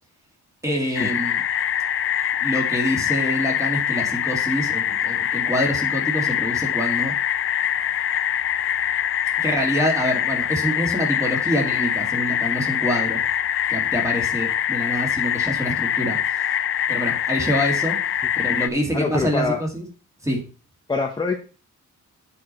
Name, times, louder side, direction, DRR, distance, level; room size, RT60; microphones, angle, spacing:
voice 1, 0.6-1.4 2.4-7.1 9.4-13.2 13.7-16.5 16.9-18.0 18.4-19.9 20.2-20.4, equal, 10° right, 0 dB, 2.4 m, -26 dB
sound 1, 1.0-18.7, left 10 dB, 45° left, 0.4 m, -24 dB
voice 2, 18.9-19.6 20.9-21.4, left 3 dB, 15° left, 3 dB, 0.8 m, -24 dB
8.5 x 4.8 x 5.8 m, 0.37 s
wide cardioid pair, 180°, 31 cm